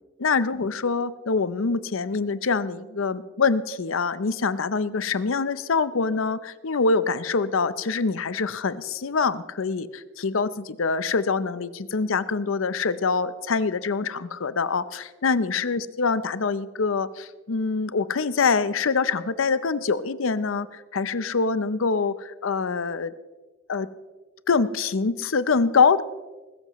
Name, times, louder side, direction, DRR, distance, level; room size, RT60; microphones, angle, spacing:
voice 1, 0.2-23.1 23.7-23.9 24.5-26.0, left 4 dB, 80° left, 15 dB, 0.6 m, -25 dB
21.0 x 13.5 x 3.1 m, 1.3 s
head